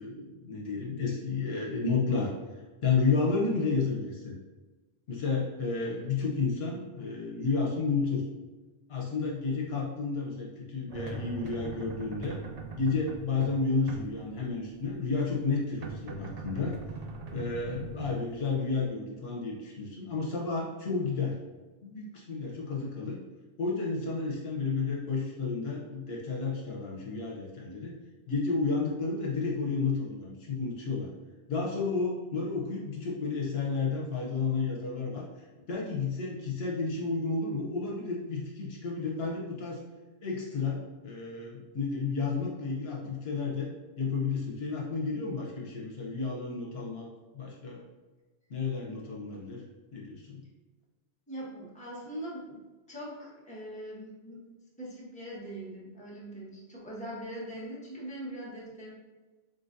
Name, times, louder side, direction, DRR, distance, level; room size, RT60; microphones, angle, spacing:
voice 1, 0.0-2.3 2.8-4.3 5.1-8.2 8.9-12.4 12.8-16.8 17.3-21.4 21.8-23.2 23.6-28.0 28.3-31.1 31.5-39.8 40.2-43.7 44.0-47.1 47.3-47.8 48.5-49.6 49.9-50.4, left 4 dB, 70° left, -2 dB, 1.0 m, -31 dB
sound 1, 10.9-18.9, right 4 dB, 50° right, 0.5 m, -41 dB
voice 2, 51.3-52.6 52.9-54.4 54.8-58.9, right 1 dB, 5° left, -7 dB, 1.2 m, -41 dB
3.9 x 3.7 x 2.6 m, 1.2 s
omnidirectional pair, 1.1 m